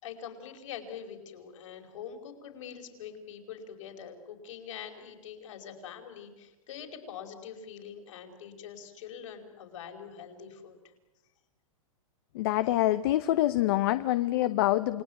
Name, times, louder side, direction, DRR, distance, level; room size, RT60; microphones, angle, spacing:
voice 1, 0.0-10.8, left 8 dB, 60° left, 4 dB, 5.2 m, -44 dB
voice 2, 12.3-15.0, left 15 dB, 45° left, 13 dB, 0.8 m, -26 dB
29.0 x 20.0 x 9.3 m, 1.0 s
supercardioid pair, 165°, 18 cm